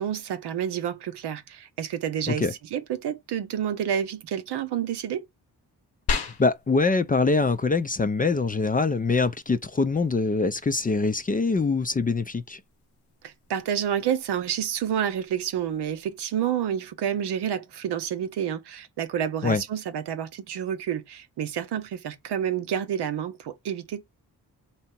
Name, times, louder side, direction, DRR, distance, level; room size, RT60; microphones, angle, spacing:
voice 1, 0.0-5.2 13.2-24.0, right 9 dB, 75° right, 0.7 m, -29 dB
sound 1, 6.1-16.1, left 4 dB, 70° left, 0.9 m, -39 dB
voice 2, 6.2-12.6 19.4-19.6, left 3 dB, 20° left, 0.4 m, -24 dB
3.4 x 2.9 x 4.3 m
supercardioid pair, 40°, 41 cm